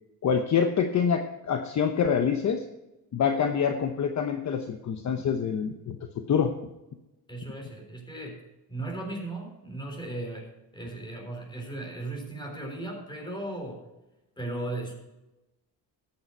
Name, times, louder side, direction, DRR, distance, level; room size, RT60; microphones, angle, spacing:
voice 1, 0.2-2.6 3.1-6.0 6.3-6.5, left 7 dB, 45° left, 6 dB, 0.9 m, -26 dB
voice 2, 7.3-8.4 8.7-13.9 14.4-14.9, right 2 dB, 10° left, 2 dB, 3.7 m, -36 dB
14.0 x 8.9 x 4.5 m, 0.98 s
cardioid pair, 135°, 40 cm